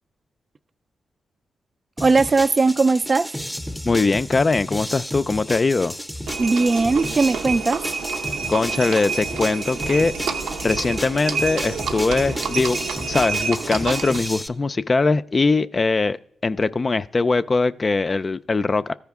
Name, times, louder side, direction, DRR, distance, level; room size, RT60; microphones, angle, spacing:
sound 1, 2.0-14.5, equal, ahead, 0.7 m, -33 dB
voice 1, 2.0-3.3 6.4-7.8, right 3 dB, 45° right, 0.3 m, -18 dB
voice 2, 3.8-5.9 8.5-10.1 10.6-16.2 16.4-18.9, left 3 dB, 40° left, 0.3 m, -21 dB
Livestock farm animals working animals, 6.3-14.4, right 5 dB, 85° right, 0.6 m, -28 dB
13.5 x 4.9 x 3.5 m
supercardioid pair, 50°, 0 cm